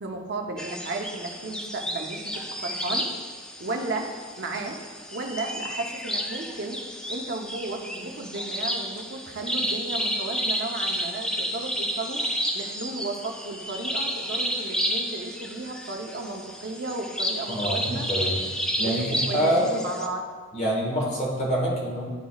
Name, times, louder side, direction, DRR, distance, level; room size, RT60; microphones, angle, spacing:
voice 1, 0.0-3.1 3.6-4.1 4.4-4.8 5.1-6.8 7.1-12.2 12.5-18.1 18.8-20.3, right 2 dB, 55° right, 2 dB, 0.8 m, -34 dB
sound 1, 0.6-20.1, equal, 5° left, 0.4 m, -31 dB
voice 2, 17.5-18.3 18.8-19.7 20.5-22.0, equal, 35° left, -4 dB, 1.8 m, -26 dB
12.0 x 4.1 x 2.4 m, 1.5 s
head